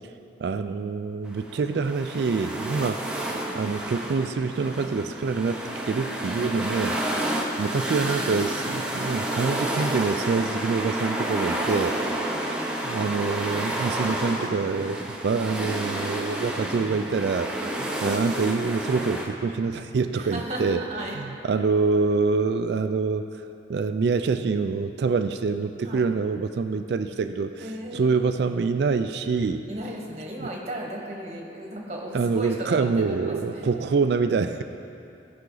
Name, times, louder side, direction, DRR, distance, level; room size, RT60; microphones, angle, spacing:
voice 1, 0.4-3.0 3.5-5.6 5.9-7.0 7.6-12.0 12.8-17.5 18.0-20.8 21.1-23.3 23.7-29.7 30.4-30.5 32.1-34.6, right 4 dB, 60° right, 9 dB, 0.3 m, -26 dB
sound 1, 1.2-19.2, right 1 dB, 5° right, 0.7 m, -30 dB
voice 2, 12.2-13.0 13.4-13.7 17.6-17.8 20.1-21.2 25.8-26.1 27.6-28.4 29.7-33.7, right 1 dB, 35° right, -1 dB, 1.3 m, -36 dB
15.5 x 5.8 x 3.9 m, 2.7 s
head